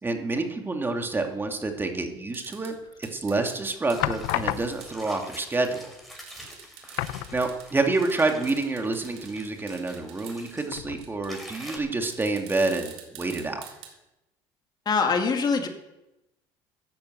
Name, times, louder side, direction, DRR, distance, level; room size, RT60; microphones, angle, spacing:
voice 1, 0.0-2.7 3.0-5.9 7.0-13.6, right 3 dB, 20° right, 4 dB, 2.5 m, -28 dB
sound 1, 2.3-2.7 3.0-3.6 3.9-4.0 4.3-4.4 4.8-4.9 6.2-9.3 9.7-10.7 11.0-11.3 12.1-13.9, right 9 dB, 70° right, 3.6 m, -46 dB
sound 2, 2.7-3.2 4.0-5.1 6.0-6.1 6.4-6.5 6.9-7.9 8.2-8.3 10.7-11.4 11.9-12.0, left 15 dB, 80° left, 0.8 m, -32 dB
sound 3, 3.9-10.7 11.3-11.8, equal, ahead, 5.6 m, -46 dB
voice 2, 14.9-15.7, left 5 dB, 40° left, 4 dB, 2.4 m, -23 dB
14.0 x 10.5 x 8.0 m, 0.95 s
supercardioid pair, 90°, 11 cm